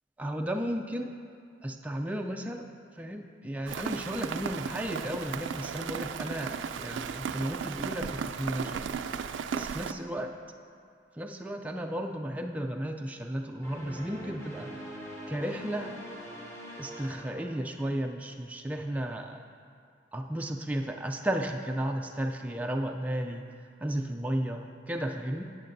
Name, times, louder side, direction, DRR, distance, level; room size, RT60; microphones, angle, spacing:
voice 1, 0.2-1.2 1.6-2.7 2.9-8.8 9.5-10.3 11.1-14.7 15.3-15.9 16.8-19.4 20.1-23.5 23.8-25.4, right 1 dB, 10° right, 2 dB, 0.3 m, -34 dB
Rain, 3.7-9.9, right 6 dB, 90° right, 0.3 m, -35 dB
sound 1, 13.6-18.1, equal, 15° left, 1.1 m, -44 dB
17.0 x 6.6 x 2.6 m, 2.3 s
head